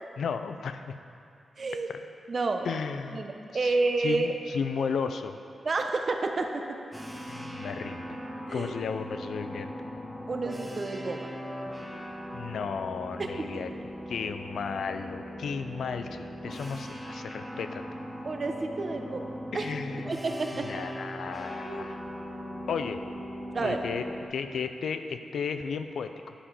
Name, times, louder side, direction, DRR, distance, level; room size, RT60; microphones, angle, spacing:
voice 1, 0.2-0.9 1.9-2.0 2.6-3.3 3.5-3.8 4.0-5.4 7.3-8.2 8.5-9.7 12.3-13.7 14.1-17.8 19.5-20.3 20.6-22.0 22.7-23.0 23.6-26.3, left 6 dB, 85° left, 9 dB, 0.4 m, -34 dB
voice 2, 1.6-1.9 2.3-2.7 3.1-4.3 5.6-6.8 8.5-8.7 10.3-11.3 13.2-13.6 18.2-19.7 20.1-20.7 21.7-21.9 23.5-23.8, right 3 dB, 50° right, 4 dB, 0.8 m, -30 dB
sound 1, 6.9-24.3, equal, ahead, 1.0 m, -39 dB
9.9 x 5.1 x 5.5 m, 2.5 s
cardioid pair, 85°, 0 cm